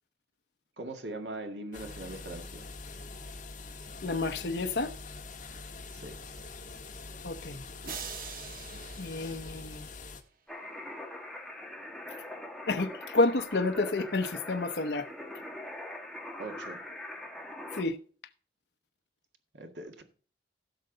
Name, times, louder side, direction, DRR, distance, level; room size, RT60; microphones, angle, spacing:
voice 1, 0.8-2.7 5.9-6.2 16.4-16.8 19.5-20.0, right 2 dB, 85° right, 1.9 m, -41 dB
sound 1, 1.7-10.2, left 3 dB, 45° left, 1.6 m, -44 dB
voice 2, 4.0-4.9 7.2-7.6 9.0-9.9 12.7-15.1 17.7-18.0, left 2 dB, 65° left, 0.9 m, -30 dB
sound 2, 7.8-10.2, right 6 dB, 50° right, 1.4 m, -44 dB
sound 3, 10.5-17.8, left 1 dB, ahead, 1.7 m, -42 dB
16.5 x 6.6 x 3.9 m
head